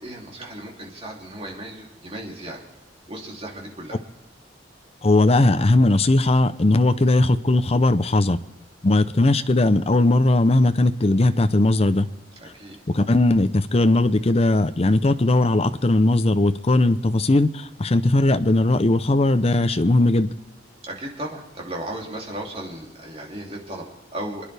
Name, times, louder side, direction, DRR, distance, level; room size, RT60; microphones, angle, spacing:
voice 1, 0.0-2.6 3.1-4.0 12.4-12.8 20.8-24.5, right 1 dB, 35° right, -1 dB, 2.9 m, -35 dB
voice 2, 5.0-8.4 8.8-12.1 12.9-20.3, left 2 dB, 35° left, 10 dB, 0.6 m, -18 dB
28.5 x 10.0 x 3.4 m, 1.0 s
head